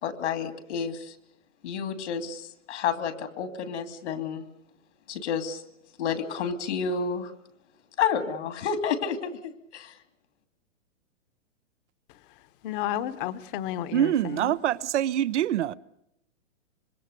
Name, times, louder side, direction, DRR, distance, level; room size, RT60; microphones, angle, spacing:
voice 1, 0.0-1.2 1.6-4.5 5.1-5.6 6.0-7.3 8.0-9.9, left 6 dB, 65° left, 2.7 m, -30 dB
voice 2, 12.6-14.6, left 12 dB, 45° left, 1.3 m, -32 dB
voice 3, 13.9-15.7, right 11 dB, 70° right, 0.8 m, -25 dB
26.0 x 21.5 x 6.7 m
hypercardioid pair, 130°, 37 cm